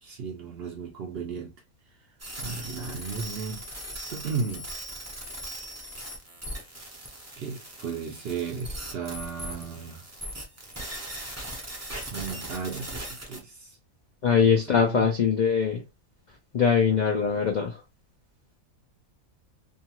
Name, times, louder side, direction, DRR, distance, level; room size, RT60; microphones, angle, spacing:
voice 1, 0.0-1.5 2.4-3.7 4.1-4.7 7.4-10.1 12.1-13.8 14.3-15.1, right 5 dB, 65° right, 0.6 m, -35 dB
sound 1, 2.2-13.4, right 1 dB, 20° right, 0.4 m, -39 dB
voice 2, 14.2-15.8 16.5-17.8, left 6 dB, 70° left, 0.4 m, -22 dB
2.7 x 2.3 x 2.9 m
omnidirectional pair, 1.4 m